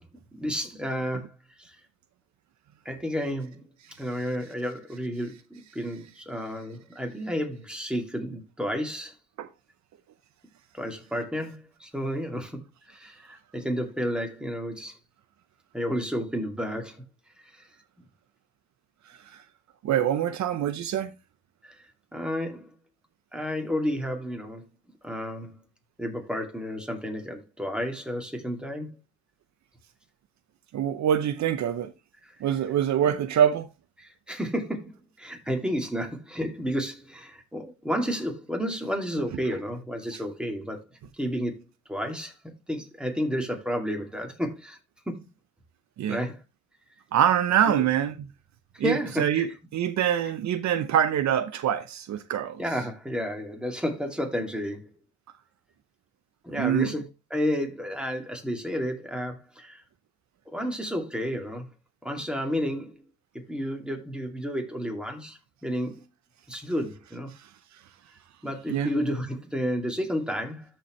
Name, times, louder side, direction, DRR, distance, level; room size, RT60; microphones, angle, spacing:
voice 1, 0.3-1.3 1.6-1.8 2.8-3.6 4.0-9.1 10.7-12.6 12.9-15.0 15.7-17.0 17.5-17.7 21.6-21.8 22.1-22.7 23.3-24.6 25.0-25.6 26.0-28.9 32.2-32.3 33.0-33.2 34.0-40.8 41.2-41.6 41.9-42.3 42.7-44.8 45.1-45.3 46.1-46.4 47.7-47.8 48.7-49.5 52.6-54.9 56.4-57.0 57.3-59.8 60.5-61.7 62.0-63.0 63.5-66.0 66.5-67.3 68.4-70.6, equal, 5° right, 2.5 m, -31 dB
voice 2, 19.8-21.1 30.7-31.9 32.4-33.7 46.0-46.2 47.1-48.1 48.8-52.6 56.6-56.9 68.7-68.9, right 10 dB, 65° right, 0.8 m, -25 dB
13.5 x 4.6 x 3.1 m
cardioid pair, 90°, 30 cm